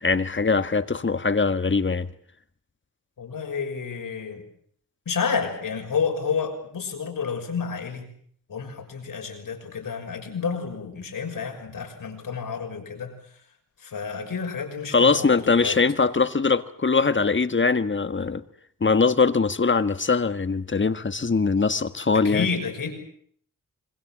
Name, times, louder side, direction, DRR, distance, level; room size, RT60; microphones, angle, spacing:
voice 1, 0.0-2.1 14.9-18.4 18.8-22.5, left 4 dB, 35° left, 11 dB, 1.5 m, -22 dB
voice 2, 3.2-4.4 5.1-8.1 8.5-13.1 13.8-15.8 22.1-22.9, left 5 dB, 80° left, 3 dB, 6.3 m, -30 dB
26.5 x 24.0 x 7.5 m, 0.62 s
cardioid pair, 75°, 33 cm